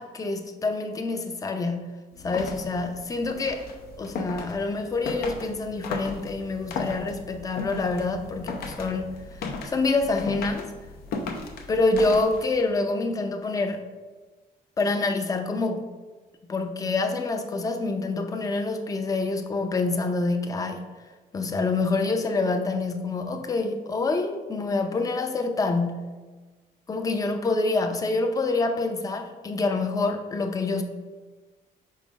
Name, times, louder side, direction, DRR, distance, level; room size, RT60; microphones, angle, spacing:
voice 1, 0.0-1.9 2.2-3.6 4.0-10.7 11.7-13.8 14.8-15.9 16.5-20.9 21.3-26.1 26.9-30.8, left 3 dB, 20° left, 5 dB, 0.5 m, -26 dB
sound 1, 2.1-12.7, left 3 dB, 80° left, 0.7 m, -36 dB
4.8 x 3.9 x 5.0 m, 1.3 s
cardioid pair, 135°, 16 cm